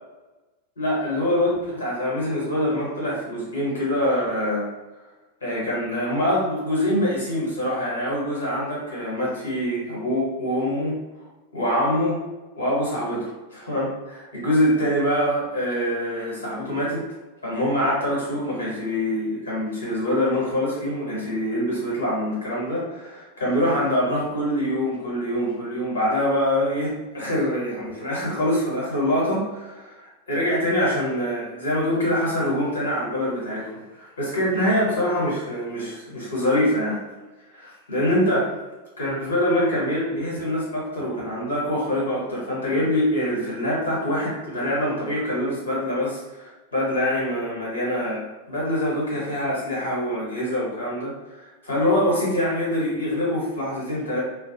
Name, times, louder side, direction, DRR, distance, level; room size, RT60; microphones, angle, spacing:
voice 1, 0.8-4.7 5.4-11.0 11.5-12.2 12.6-17.0 17.4-37.0 37.5-38.5 39.0-54.2, equal, 70° left, -5 dB, 1.2 m, -24 dB
2.4 x 2.0 x 2.7 m, 1.1 s
figure-of-eight pair, 90°, 0 cm